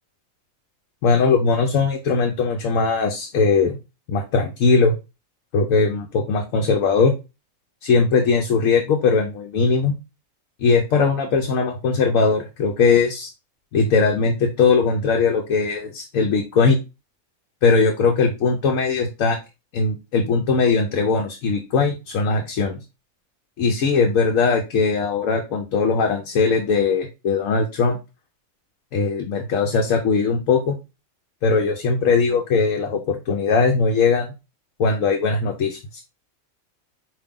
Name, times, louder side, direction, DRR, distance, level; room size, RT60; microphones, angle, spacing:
voice 1, 1.0-3.8 4.1-4.9 5.5-7.1 7.8-9.9 10.6-13.3 13.7-16.8 17.6-19.4 19.7-22.8 23.6-28.0 28.9-30.8 31.4-34.3 34.8-36.0, left 4 dB, 75° left, 2 dB, 1.1 m, -20 dB
4.9 x 2.8 x 3.5 m, 0.26 s
omnidirectional pair, 1.4 m